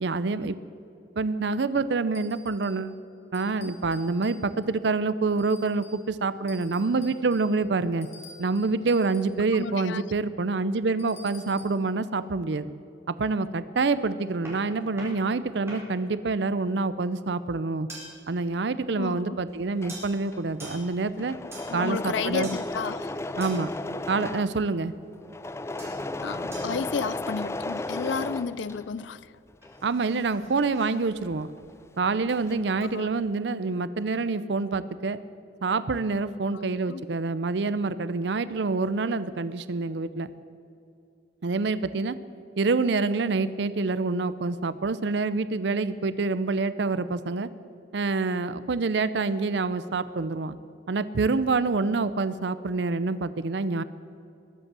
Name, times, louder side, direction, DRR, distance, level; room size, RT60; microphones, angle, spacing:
voice 1, 0.0-0.6 1.2-3.0 3.3-8.1 8.4-12.7 13.1-17.9 18.3-21.4 21.7-22.5 23.4-23.7 24.1-24.9 29.8-31.5 32.0-35.2 35.6-40.3 41.4-42.2 42.6-47.5 47.9-50.6 50.9-53.8, right 3 dB, 65° right, 0.5 m, -27 dB
sound 1, 2.1-2.9 3.3-4.8 5.4-6.1 6.5-9.4 11.0-11.8, left 2 dB, 35° left, 3.2 m, -51 dB
voice 2, 9.5-10.0 19.0-19.4 21.7-23.4 26.2-29.3 32.8-33.1 36.5-37.0, left 5 dB, 75° left, 0.5 m, -33 dB
sound 2, 14.4-15.3 15.7-16.0 16.8-16.9 17.9-18.4 19.9-20.3 20.6-21.1 21.5-22.0 22.4-22.8 23.4-23.8 25.8-26.1 26.5-26.8 27.5-28.1 29.6-31.0 32.3-32.5 32.8-33.0, right 1 dB, 15° right, 4.1 m, -45 dB
Engine / Mechanisms, 19.5-29.2 29.5-31.9 32.1-32.8, left 2 dB, 15° left, 0.4 m, -35 dB
21.5 x 8.0 x 7.5 m
head